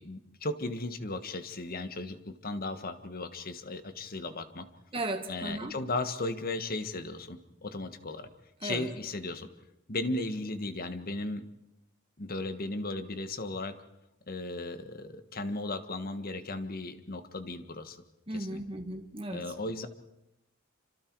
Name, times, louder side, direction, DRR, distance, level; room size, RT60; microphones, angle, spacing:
voice 1, 0.0-4.7 5.3-8.3 8.6-9.5 9.9-11.4 12.2-13.8 14.3-18.0 18.3-18.6 19.3-19.9, left 2 dB, 45° left, 10 dB, 1.5 m, -36 dB
voice 2, 4.9-5.7 8.6-8.9 18.3-19.5, right 1 dB, 25° right, 4 dB, 2.0 m, -35 dB
28.0 x 26.0 x 4.7 m, 0.87 s
head